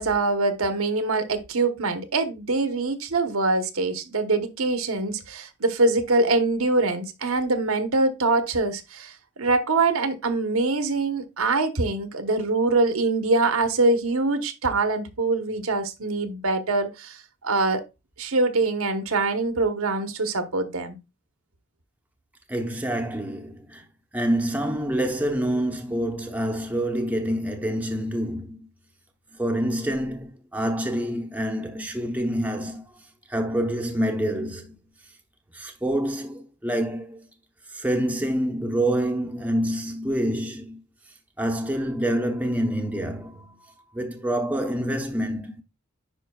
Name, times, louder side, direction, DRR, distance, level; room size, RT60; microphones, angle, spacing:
voice 1, 0.0-17.8 18.2-21.0, right 3 dB, 80° right, 1.1 m, -24 dB
voice 2, 22.5-23.8 24.1-28.7 29.4-32.8 33.3-34.7 35.5-37.3 37.7-40.8 41.4-43.5 43.9-45.6, right 1 dB, 5° right, 0.8 m, -27 dB
10.0 x 5.2 x 2.3 m
head